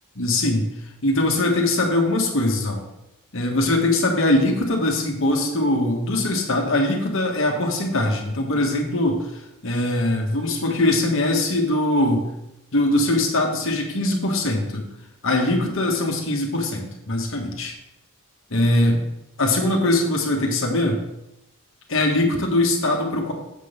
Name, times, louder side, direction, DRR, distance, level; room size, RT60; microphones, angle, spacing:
voice 1, 0.1-0.7 1.0-2.8 3.3-9.3 9.6-12.3 12.7-14.9 15.2-17.7 18.5-19.0 19.4-21.0 21.9-23.3, left 1 dB, 60° left, 2 dB, 1.5 m, -21 dB
7.5 x 3.8 x 6.7 m, 0.90 s
head